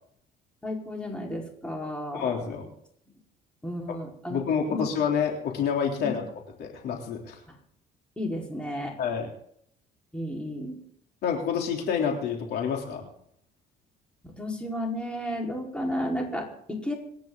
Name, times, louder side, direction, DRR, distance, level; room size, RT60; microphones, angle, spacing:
voice 1, 0.6-2.5 3.6-4.4 4.7-4.9 6.0-6.1 7.5-7.6 8.2-9.0 10.1-10.8 14.2-16.9, left 1 dB, 5° left, -1 dB, 4.7 m, -33 dB
voice 2, 2.1-2.7 3.9-4.0 4.3-6.2 6.6-7.4 9.0-9.3 11.2-13.0, left 7 dB, 70° left, 1 dB, 3.5 m, -28 dB
26.5 x 10.5 x 4.0 m, 0.68 s
cardioid pair, 110°, 17 cm